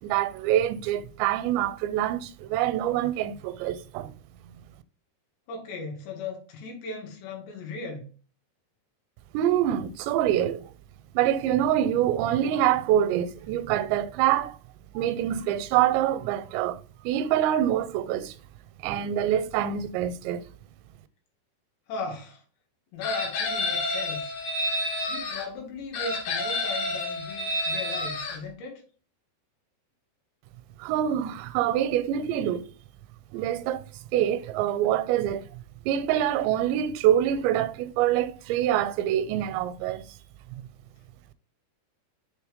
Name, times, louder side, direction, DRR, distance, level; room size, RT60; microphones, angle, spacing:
voice 1, 0.0-4.1 9.3-10.6 11.2-14.6 14.9-16.8 17.0-18.4 18.8-20.4 30.8-32.7 33.3-33.8 34.1-35.5 35.9-40.0 40.5-40.6, right 11 dB, 85° right, 2.8 m, -25 dB
voice 2, 5.5-8.1 21.9-22.4 22.9-24.3 25.1-28.8, left 3 dB, 75° left, 3.7 m, -37 dB
Chicken rooster, 23.0-25.4 25.9-28.4, left 2 dB, 60° left, 2.4 m, -29 dB
7.2 x 3.3 x 5.0 m
omnidirectional pair, 5.0 m